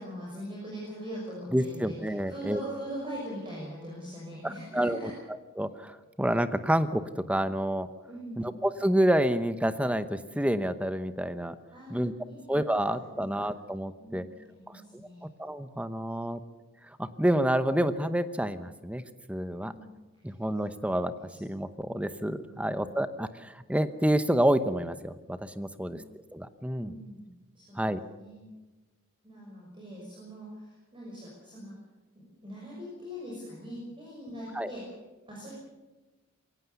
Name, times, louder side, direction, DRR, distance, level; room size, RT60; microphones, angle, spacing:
voice 1, 0.0-5.1 8.0-8.5 11.7-12.4 13.1-13.3 14.0-15.2 19.6-20.3 21.2-21.4 22.4-22.9 26.7-27.3 27.5-27.8 28.1-28.4 29.2-31.7 32.1-34.8 35.3-35.5, equal, 25° right, -4 dB, 6.3 m, -42 dB
voice 2, 1.5-2.6 4.4-5.1 5.6-7.9 8.4-11.5 11.9-12.1 12.5-14.2 15.2-16.4 17.0-19.0 19.3-19.7 20.2-21.1 21.4-26.0 26.3-26.9 27.8-28.0 34.5-34.7, right 1 dB, 5° right, 12 dB, 0.9 m, -28 dB
23.0 x 17.5 x 7.0 m, 1.2 s
head